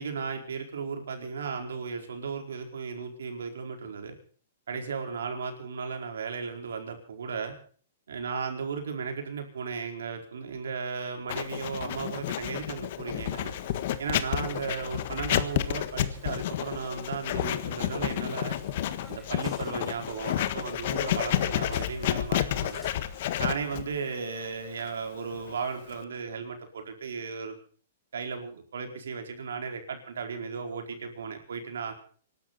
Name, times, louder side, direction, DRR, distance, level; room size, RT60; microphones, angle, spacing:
voice 1, 0.0-4.1 4.7-7.5 8.1-13.5 14.0-18.6 19.1-22.8 23.4-27.6 28.1-31.9, right 5 dB, 85° right, 4 dB, 4.4 m, -35 dB
Writing, 11.3-26.0, left 12 dB, 55° left, 1.6 m, -30 dB
sound 1, 13.2-23.2, equal, 5° right, 4.7 m, -52 dB
26.0 x 12.5 x 4.2 m, 0.43 s
hypercardioid pair, 135°, 0 cm